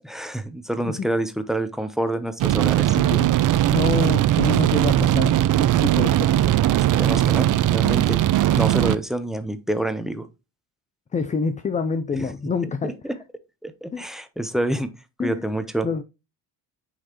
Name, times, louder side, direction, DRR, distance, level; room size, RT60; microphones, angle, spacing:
voice 1, 0.0-3.0 6.7-8.2 8.5-10.3 12.2-12.3 12.8-13.1 13.6-14.9 15.2-15.9, right 1 dB, ahead, 0.8 m, -27 dB
sound 1, 2.4-9.0, right 13 dB, 40° right, 0.5 m, -19 dB
voice 2, 2.9-3.3 3.7-6.4 11.1-12.9 13.9-14.0 15.2-15.4 15.8-16.0, left 4 dB, 15° left, 0.4 m, -27 dB
9.6 x 3.2 x 3.0 m
supercardioid pair, 70°, 50 cm